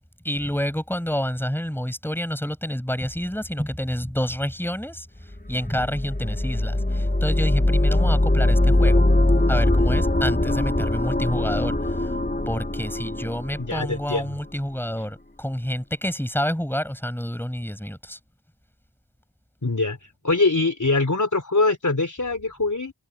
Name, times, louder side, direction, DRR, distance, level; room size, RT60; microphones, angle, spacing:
voice 1, 0.2-5.1 5.5-9.0 9.5-12.1 12.5-18.2, equal, 5° left, 5.8 m, -28 dB
sound 1, 5.5-14.3, left 1 dB, 20° left, 3.6 m, -21 dB
voice 2, 13.6-14.3 19.6-20.0 20.2-22.9, left 3 dB, 40° left, 3.8 m, -23 dB
cardioid pair, 50°, 44 cm